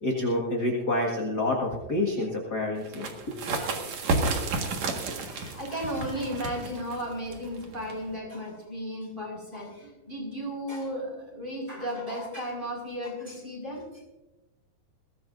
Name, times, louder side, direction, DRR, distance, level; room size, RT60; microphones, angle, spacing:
voice 1, 0.0-3.4, left 1 dB, 40° left, -1 dB, 1.6 m, -28 dB
sound 1, 2.8-8.2, right 3 dB, 55° right, 2.7 m, -32 dB
voice 2, 3.4-3.7 4.0-4.4 5.2-13.8, equal, 10° right, -1 dB, 5.2 m, -35 dB
22.0 x 16.5 x 2.6 m, 1.0 s
omnidirectional pair, 4.4 m